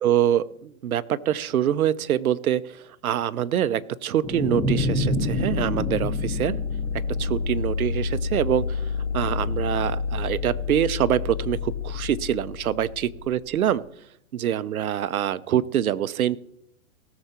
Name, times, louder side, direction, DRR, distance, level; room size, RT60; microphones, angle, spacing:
voice 1, 0.0-6.6 7.2-8.8 9.1-13.8 14.3-16.4, right 10 dB, 85° right, 16 dB, 0.8 m, -25 dB
sound 1, 4.2-7.5, left 1 dB, 10° left, 2.0 m, -27 dB
sound 2, 5.1-13.8, left 5 dB, 30° left, 0.5 m, -29 dB
18.5 x 7.0 x 4.4 m, 0.72 s
hypercardioid pair, 155°, 42 cm